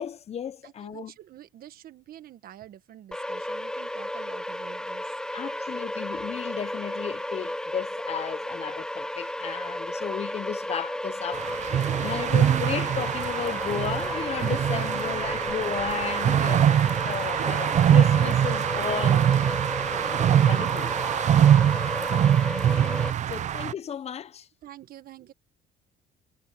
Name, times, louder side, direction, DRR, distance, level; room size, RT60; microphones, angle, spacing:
voice 1, 0.0-1.1 5.3-19.3 20.5-21.0 22.7-24.5, left 8 dB, 40° left, 0.8 m, -34 dB
voice 2, 0.6-5.1 14.7-15.3 24.6-25.3, right 12 dB, 60° right, 1.3 m, -48 dB
sound 1, 3.1-23.1, left 1 dB, 5° left, 0.9 m, -33 dB
sound 2, 11.3-23.7, right 10 dB, 45° right, 0.5 m, -23 dB
cardioid pair, 110°, 17 cm